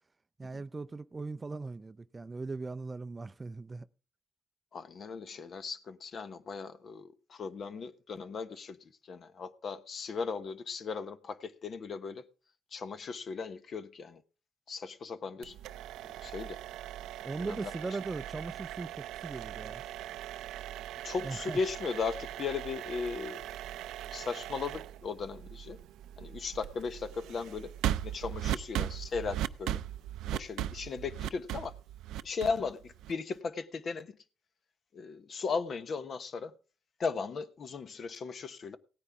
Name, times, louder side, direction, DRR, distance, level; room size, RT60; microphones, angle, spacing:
voice 1, 0.4-3.9 17.2-19.8 21.2-21.6, right 3 dB, 25° right, 0.5 m, -39 dB
voice 2, 4.7-8.8 9.0-12.3 12.7-14.2 14.7-15.6 16.0-16.6 17.4-17.6 21.0-23.4 24.1-25.8 26.2-27.7 28.0-29.8 30.3-31.8 32.2-34.2 34.9-36.5 37.0-38.8, left 5 dB, 50° left, 1.1 m, -37 dB
sound 1, 15.4-33.3, right 12 dB, 85° right, 0.5 m, -39 dB
17.0 x 9.7 x 3.5 m
cardioid pair, 90°, 0 cm